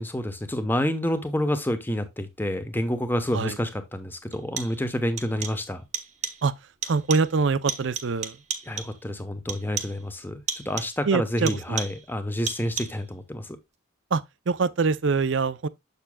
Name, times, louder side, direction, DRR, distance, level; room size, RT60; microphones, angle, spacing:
voice 1, 0.0-5.8 8.6-13.6, equal, 10° left, 0.9 m, -28 dB
sound 1, 3.3-3.4 4.3-4.9 5.2-5.7 5.9-6.5 6.8-7.4 7.7-9.0 9.5-10.1 10.5-11.0 11.5-12.1 12.5-13.1, right 7 dB, 35° right, 0.9 m, -34 dB
voice 2, 6.8-8.4 11.1-11.8 14.1-15.7, right 4 dB, 65° right, 0.5 m, -24 dB
7.2 x 6.8 x 2.2 m
head